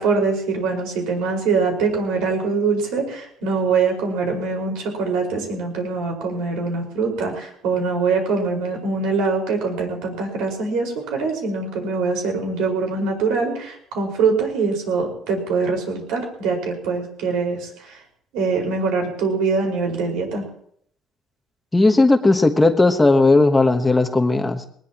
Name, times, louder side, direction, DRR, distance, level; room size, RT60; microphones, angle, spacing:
voice 1, 0.0-18.0 18.3-20.5, right 4 dB, 85° right, 2 dB, 5.1 m, -23 dB
voice 2, 21.7-24.7, left 2 dB, 10° left, 5 dB, 1.2 m, -16 dB
20.0 x 19.5 x 3.0 m, 0.66 s
cardioid pair, 140°, 0 cm